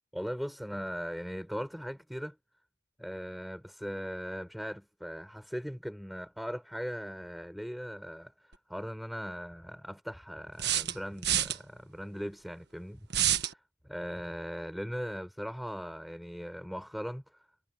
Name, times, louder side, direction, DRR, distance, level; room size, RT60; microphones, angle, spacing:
voice 1, 0.1-2.4 3.0-17.4, equal, ahead, 5.3 m, -39 dB
sound 1, 8.5-8.6 10.6-11.6 13.1-13.5, right 11 dB, 55° right, 1.6 m, -28 dB
head